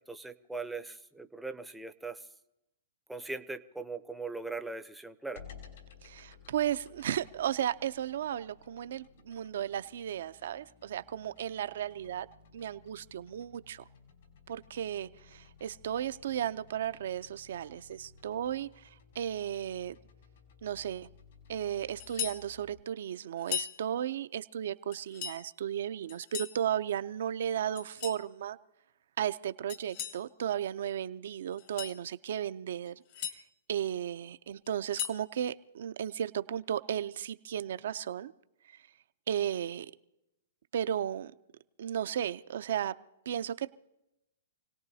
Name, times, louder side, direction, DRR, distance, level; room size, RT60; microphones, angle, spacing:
voice 1, 0.0-2.2 3.1-5.4, right 3 dB, 5° right, 9 dB, 0.6 m, -40 dB
sound 1, 5.4-22.8, left 5 dB, 75° left, 4.8 m, -57 dB
voice 2, 6.0-12.3 12.5-13.8 14.5-19.9 20.6-21.1 21.5-28.6 29.2-33.0 33.3-33.4 33.7-38.3 38.7-38.8 39.3-39.9 40.7-41.3 41.8-43.0 43.3-43.7, right 10 dB, 70° right, 13 dB, 0.5 m, -35 dB
sound 2, 22.0-22.4 23.4-23.8 24.9-25.4 26.1-26.6 27.8-28.2 29.7-30.2 31.5-32.0 32.9-33.4 34.7-35.2, left 10 dB, 50° left, 1.5 m, -38 dB
28.0 x 18.0 x 2.8 m, 0.89 s
hypercardioid pair, 140°, 0 cm